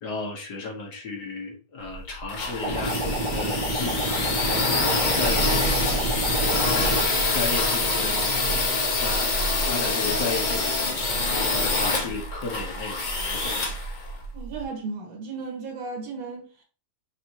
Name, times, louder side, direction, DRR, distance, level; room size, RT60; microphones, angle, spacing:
voice 1, 0.0-4.1 4.5-5.7 6.0-7.0 7.3-11.0 11.3-13.6, left 3 dB, 85° left, 1.9 m, -34 dB
sound 1, 1.9-14.6, left 2 dB, 40° left, 0.7 m, -25 dB
sound 2, 2.6-7.1, right 1 dB, 80° right, 1.7 m, -29 dB
voice 2, 14.3-16.6, right 4 dB, 60° right, 1.9 m, -35 dB
5.9 x 3.1 x 2.9 m
omnidirectional pair, 1.7 m